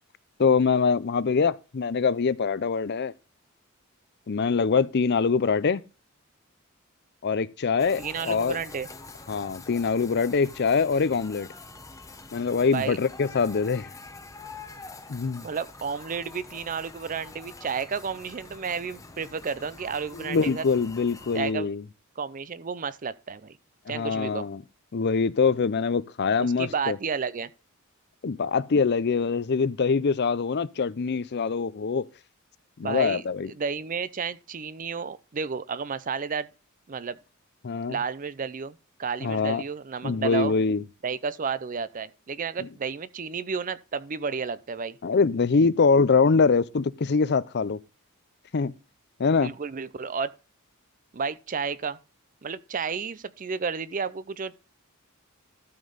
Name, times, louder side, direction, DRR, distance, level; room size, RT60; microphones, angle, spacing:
voice 1, 0.4-3.1 4.3-5.8 7.2-8.6 9.3-11.5 12.3-13.9 15.1-15.4 20.1-21.8 23.9-24.6 24.9-27.0 28.2-32.0 32.8-33.5 37.6-38.0 39.2-39.6 40.0-40.8 42.6-42.7 45.0-47.8 48.5-48.7 49.2-49.5, left 5 dB, 50° left, 0.5 m, -24 dB
sound 1, 7.8-21.5, left 3 dB, 15° left, 0.8 m, -45 dB
voice 2, 8.0-8.9 12.7-13.0 15.4-20.6 21.3-21.7 22.2-23.6 23.9-24.5 26.4-27.5 32.8-33.2 33.5-36.5 36.9-37.2 37.9-40.6 41.0-45.0 49.4-50.3 51.1-52.0 52.4-54.5, right 5 dB, 40° right, 0.5 m, -32 dB
12.5 x 5.4 x 4.0 m
head